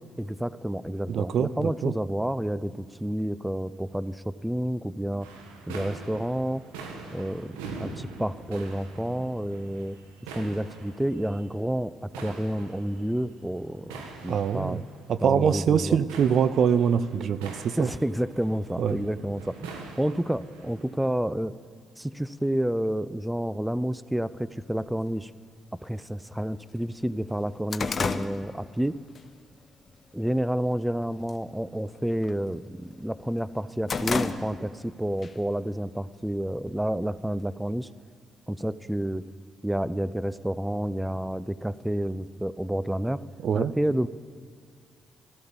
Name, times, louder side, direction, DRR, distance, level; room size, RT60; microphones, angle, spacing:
voice 1, 0.2-5.3 5.7-6.6 7.1-10.0 10.3-14.8 15.2-16.0 17.8-21.5 22.0-25.3 25.8-29.0 30.1-37.9 38.5-39.2 39.6-43.2 43.5-44.1, right 1 dB, 5° right, 17 dB, 0.5 m, -30 dB
voice 2, 1.1-1.9 14.3-14.8 15.1-17.9 18.8-19.0 43.4-43.7, right 7 dB, 65° right, 15 dB, 0.5 m, -24 dB
sound 1, 5.2-20.9, right 4 dB, 90° right, 1.5 m, -44 dB
sound 2, 24.8-24.9 25.8-25.9 26.4-26.5 26.8-29.2 29.6-29.9 30.4-30.9 31.2-31.5 31.8-33.0 33.4-34.9 35.2-35.3 36.2-37.1, left 4 dB, 45° left, 0.9 m, -32 dB
14.0 x 13.0 x 7.1 m, 2.2 s
hypercardioid pair, 50°, 0 cm